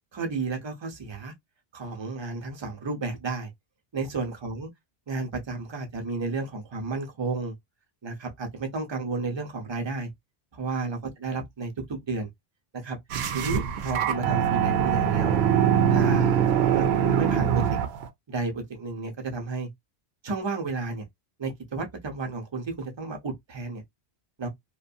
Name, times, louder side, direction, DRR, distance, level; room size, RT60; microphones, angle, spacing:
voice 1, 0.1-1.3 1.7-3.5 3.9-4.7 5.1-7.5 8.0-10.1 10.5-12.3 12.7-13.0 13.3-15.5 15.9-17.8 18.3-19.7 20.2-21.0 21.4-23.8 24.4-24.5, right 3 dB, 30° right, 0.6 m, -32 dB
sound 1, 13.1-18.1, right 8 dB, 75° right, 0.8 m, -23 dB
2.6 x 2.3 x 2.5 m
omnidirectional pair, 1.1 m